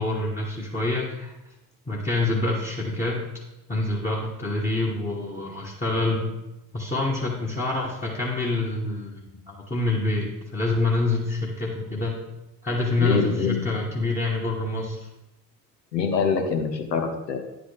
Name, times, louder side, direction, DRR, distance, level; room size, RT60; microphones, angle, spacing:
voice 1, 0.0-1.3 1.9-3.2 3.7-6.3 6.7-9.2 9.5-12.2 12.6-15.1, left 2 dB, 15° left, -1 dB, 1.4 m, -26 dB
voice 2, 13.0-13.6 15.9-17.4, left 5 dB, 85° left, 5 dB, 0.9 m, -24 dB
9.7 x 6.1 x 3.4 m, 0.95 s
figure-of-eight pair, 50°, 48 cm